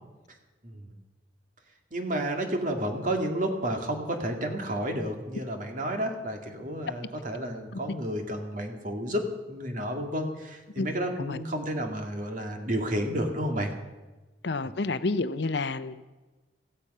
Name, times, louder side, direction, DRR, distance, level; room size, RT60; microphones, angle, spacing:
voice 1, 1.9-13.7 14.6-14.7, right 1 dB, 45° right, 3 dB, 2.3 m, -31 dB
voice 2, 14.4-16.0, left 3 dB, 65° left, 13 dB, 0.7 m, -29 dB
16.0 x 15.5 x 5.6 m, 1.2 s
head